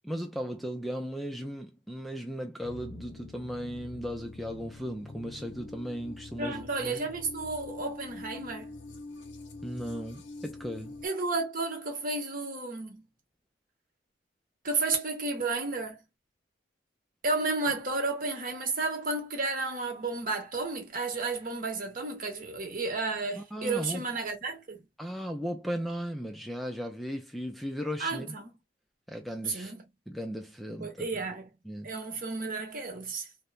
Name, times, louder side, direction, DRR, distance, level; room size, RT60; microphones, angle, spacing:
voice 1, 0.0-7.0 9.6-11.0 23.4-24.0 25.0-28.4 29.1-29.7 30.1-31.2 31.7-31.9, equal, ahead, 0.4 m, -36 dB
sound 1, 2.6-11.1, left 2 dB, 80° left, 0.6 m, -45 dB
voice 2, 6.4-8.8 11.0-13.0 14.6-16.0 17.2-24.8 28.0-28.6 29.5-29.9 30.8-31.5 31.8-33.3, right 3 dB, 50° right, 1.0 m, -32 dB
3.1 x 2.1 x 2.3 m
head